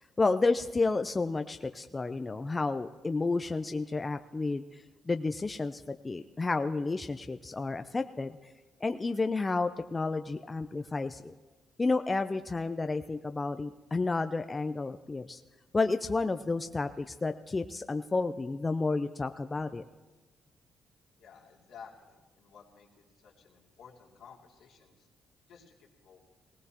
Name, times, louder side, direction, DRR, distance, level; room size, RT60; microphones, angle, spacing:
voice 1, 0.2-8.4 8.8-11.3 11.8-15.4 15.7-19.8, left 3 dB, 25° left, 8 dB, 0.4 m, -31 dB
voice 2, 21.2-25.1 25.5-26.4, left 6 dB, 80° left, -2 dB, 2.5 m, -54 dB
19.0 x 16.5 x 2.9 m, 1.2 s
cardioid pair, 90°, 0 cm